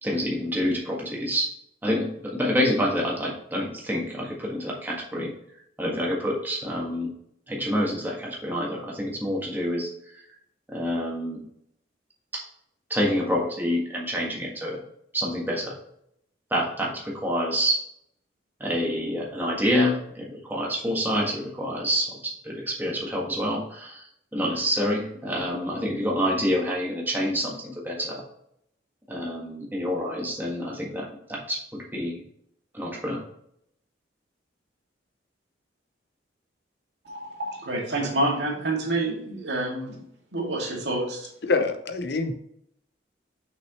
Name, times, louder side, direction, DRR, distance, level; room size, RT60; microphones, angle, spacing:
voice 1, 0.0-1.5 1.8-5.3 5.8-7.1 7.5-9.9 10.7-11.4 12.3-12.4 12.9-14.8 15.1-15.7 16.5-17.8 18.6-24.1 24.3-28.2 29.1-32.2 32.7-33.2, equal, 10° right, -3 dB, 1.5 m, -27 dB
voice 2, 37.0-40.0 40.3-41.3, right 2 dB, 70° right, -2 dB, 2.3 m, -28 dB
voice 3, 41.5-42.4, left 3 dB, 65° left, 7 dB, 0.7 m, -25 dB
6.1 x 6.0 x 3.0 m, 0.72 s
head